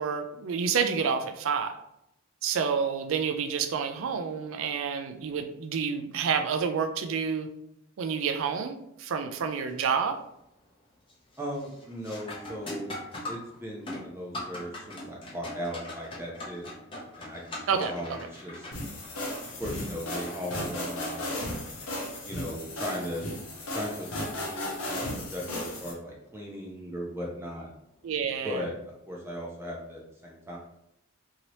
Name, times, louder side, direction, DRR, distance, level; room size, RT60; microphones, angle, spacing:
voice 1, 0.0-1.8 2.4-7.5 8.0-10.2 17.7-17.9 28.0-28.6, right 6 dB, 70° right, 7 dB, 0.4 m, -29 dB
sound 1, 9.5-9.9 10.3-10.7 11.1-24.6 27.1-27.2 28.0-28.3, left 1 dB, 25° left, 0.7 m, -43 dB
voice 2, 11.4-12.9 13.3-16.6 17.2-18.7 19.6-21.6 22.2-23.3 23.7-27.7 28.4-28.7 29.1-30.6, equal, 10° right, -2 dB, 0.5 m, -37 dB
sound 2, 18.7-25.9, left 1 dB, 85° left, 0.8 m, -35 dB
2.8 x 2.8 x 3.0 m, 0.80 s
head